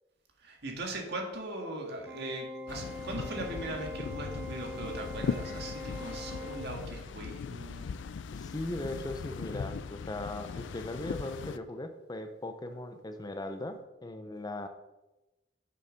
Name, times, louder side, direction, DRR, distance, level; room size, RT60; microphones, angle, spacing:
voice 1, 0.4-7.9, right 2 dB, 65° right, 1 dB, 1.8 m, -39 dB
Organ, 2.1-7.1, left 2 dB, 5° right, 2.6 m, -43 dB
sound 1, 2.7-11.6, left 5 dB, 75° left, 0.4 m, -39 dB
voice 2, 8.3-14.7, left 2 dB, 20° left, 8 dB, 0.6 m, -38 dB
6.8 x 6.8 x 5.1 m, 1.0 s
head